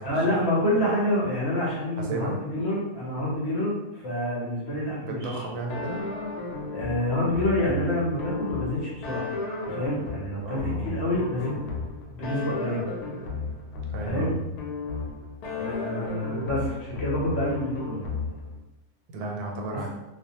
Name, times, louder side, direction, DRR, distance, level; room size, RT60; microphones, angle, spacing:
voice 1, 0.0-5.4 6.7-9.3 9.6-11.6 12.1-12.9 14.0-14.4 15.5-18.0, left 1 dB, 55° left, -6 dB, 0.9 m, -27 dB
voice 2, 2.0-2.4 5.0-6.0 10.4-10.9 13.9-14.4 19.1-19.9, right 3 dB, 90° right, 0 dB, 1.1 m, -33 dB
sound 1, 5.7-18.6, left 2 dB, 90° left, 1.1 m, -34 dB
2.5 x 2.1 x 2.8 m, 1.0 s
omnidirectional pair, 1.6 m